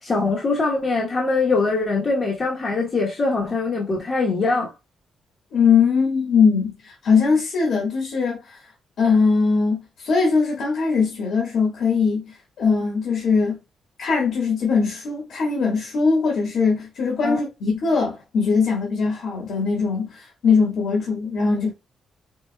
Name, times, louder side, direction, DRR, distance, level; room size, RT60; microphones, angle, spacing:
voice 1, 0.0-4.7 17.2-17.4, left 3 dB, 30° left, 1.1 m, -22 dB
voice 2, 5.5-8.6 9.0-13.6 14.0-21.7, left 5 dB, 60° left, 1.7 m, -21 dB
4.6 x 3.9 x 2.3 m
wide cardioid pair, 170°, 0 cm